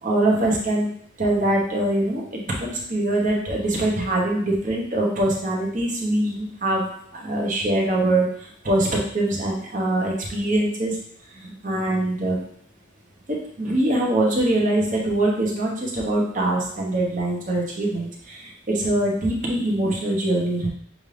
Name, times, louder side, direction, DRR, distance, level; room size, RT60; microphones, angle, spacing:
voice 1, 0.0-0.9 1.2-11.0 11.3-12.4 13.3-20.7, right 1 dB, 40° right, -2 dB, 1.0 m, -23 dB
6.1 x 2.6 x 3.3 m, 0.66 s
head